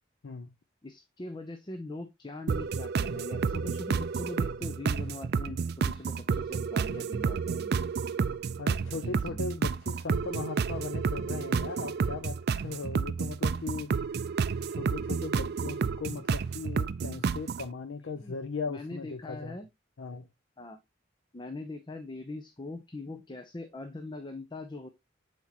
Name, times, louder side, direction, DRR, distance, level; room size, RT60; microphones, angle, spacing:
voice 1, 0.8-7.7 8.9-9.4 18.2-18.4 18.7-19.7 20.6-20.8 21.3-24.9, left 2 dB, 25° left, 0.6 m, -41 dB
sound 1, 2.5-17.7, right 5 dB, 55° right, 0.4 m, -30 dB
voice 2, 8.6-14.4 14.7-19.6 20.0-20.3, left 4 dB, 75° left, 0.5 m, -38 dB
8.2 x 4.5 x 2.9 m
head